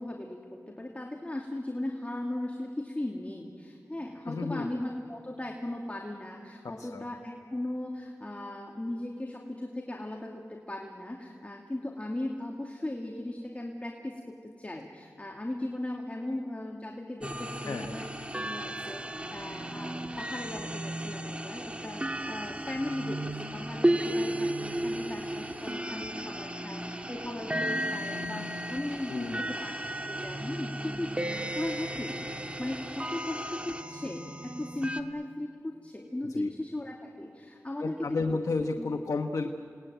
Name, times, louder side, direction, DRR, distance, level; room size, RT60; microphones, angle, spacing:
voice 1, 0.0-18.1 18.3-31.1 31.6-38.2 38.8-38.9, left 1 dB, 25° left, 1 dB, 2.6 m, -37 dB
voice 2, 4.2-4.7 6.6-7.0 17.6-17.9 29.1-29.5 36.3-36.5 37.8-39.5, left 3 dB, 80° left, 5 dB, 1.1 m, -32 dB
sound 1, 17.2-35.0, right 1 dB, 20° right, 1.9 m, -34 dB
28.0 x 19.5 x 9.2 m, 2.6 s
cardioid pair, 45°, 6 cm